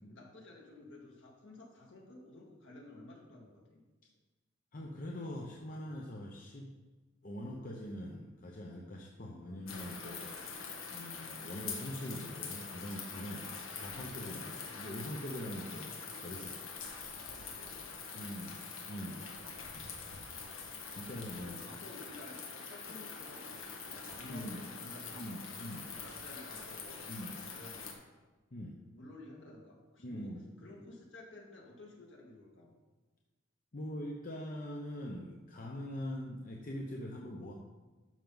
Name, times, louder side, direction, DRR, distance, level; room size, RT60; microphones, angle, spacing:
voice 1, 0.1-3.8 9.3-9.8 10.5-10.6 14.7-14.8 17.1-18.3 21.2-27.2 27.5-27.9 28.9-32.7, left 2 dB, 65° left, -1 dB, 2.1 m, -54 dB
voice 2, 4.7-6.7 7.2-10.3 10.9-16.6 18.1-18.6 18.9-19.2 20.9-21.7 22.9-23.0 24.2-24.7 25.1-25.9 27.1-27.3 28.5-28.8 30.0-30.4 33.7-37.5, equal, 40° left, -1 dB, 0.8 m, -43 dB
sound 1, 9.7-27.9, left 5 dB, 85° left, 1.6 m, -45 dB
12.0 x 5.8 x 3.9 m, 1.3 s
head